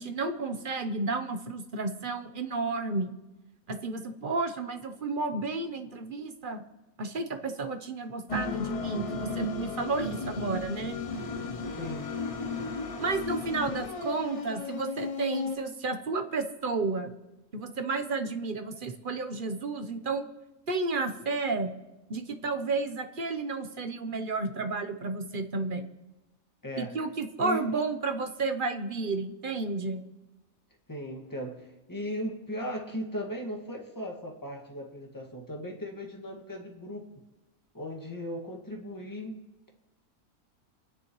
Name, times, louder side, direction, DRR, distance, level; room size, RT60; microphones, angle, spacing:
voice 1, 0.0-3.1 3.7-6.6 7.0-11.0 13.0-17.1 17.5-20.2 20.7-21.7 22.1-25.9 26.8-30.0, right 3 dB, 40° right, 7 dB, 0.9 m, -32 dB
sound 1, 8.3-15.6, left 3 dB, 40° left, 0.4 m, -34 dB
voice 2, 11.7-12.1 26.6-27.0 27.4-27.7 30.9-37.1 37.7-39.4, equal, 15° left, 0 dB, 1.9 m, -37 dB
28.5 x 10.0 x 3.1 m, 1.1 s
omnidirectional pair, 1.6 m